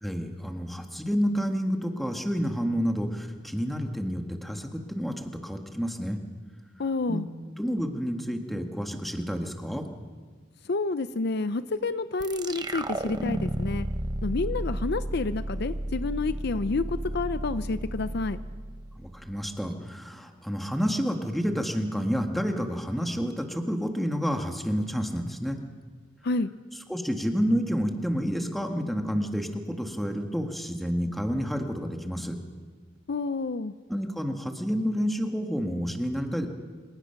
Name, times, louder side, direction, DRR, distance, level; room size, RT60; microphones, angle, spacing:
voice 1, 0.0-6.2 7.1-7.2 7.6-9.9 19.0-25.6 26.9-32.3 33.9-36.5, equal, ahead, 3 dB, 1.7 m, -29 dB
voice 2, 6.8-7.3 10.6-13.9 14.2-18.4 26.2-26.5 33.1-33.7, left 3 dB, 55° left, 12 dB, 0.6 m, -29 dB
sound 1, 12.2-19.5, right 1 dB, 20° right, 0.9 m, -33 dB
26.5 x 19.5 x 5.9 m, 1.5 s
head